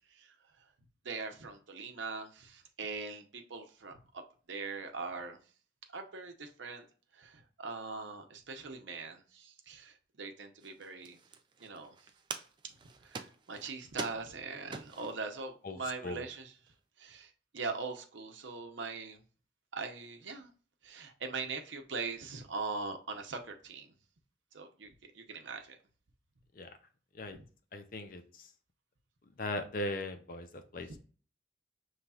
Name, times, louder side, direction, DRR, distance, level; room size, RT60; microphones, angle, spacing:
voice 1, 1.0-4.0 4.5-5.4 5.9-6.8 7.1-11.2 11.6-12.0 13.0-16.5 17.0-19.2 19.7-20.5 20.8-23.9 24.5-25.8 27.3-27.4 30.9-31.0, right 4 dB, 90° right, 0.8 m, -41 dB
sound 1, 10.6-15.3 15.9-16.0 16.3-16.7, right 4 dB, 25° right, 0.3 m, -45 dB
voice 2, 15.6-16.2 26.5-26.7 27.1-27.4 27.7-28.5 29.4-30.9, left 1 dB, 50° left, 0.5 m, -39 dB
5.5 x 3.2 x 2.4 m
head